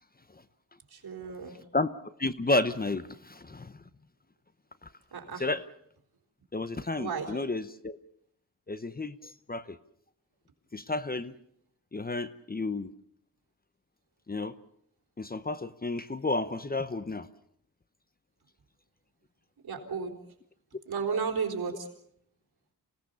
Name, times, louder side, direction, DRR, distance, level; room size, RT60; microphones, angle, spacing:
voice 1, 0.9-1.6 5.1-5.5 7.0-7.3 19.6-20.2 20.9-21.9, right 5 dB, 70° right, 2 dB, 4.1 m, -33 dB
voice 2, 2.2-3.7 5.4-5.6 6.5-8.0 8.7-9.2 9.5-9.8 10.7-11.3 11.9-12.9 14.3-14.5 15.2-17.3, left 2 dB, 25° left, 13 dB, 0.8 m, -31 dB
27.0 x 17.5 x 6.9 m, 0.70 s
wide cardioid pair, 100°, 38 cm